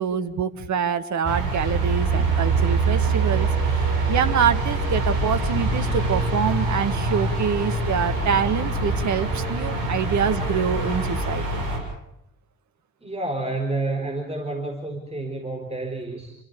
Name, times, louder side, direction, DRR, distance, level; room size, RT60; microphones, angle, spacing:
voice 1, 0.0-11.6, right 7 dB, 45° right, 10 dB, 1.8 m, -25 dB
sound 1, 1.2-11.8, right 3 dB, 60° right, 7.0 m, -24 dB
voice 2, 13.0-16.4, right 2 dB, 15° right, 3 dB, 4.2 m, -29 dB
29.0 x 14.0 x 8.6 m, 0.85 s
figure-of-eight pair, 50°, 40 cm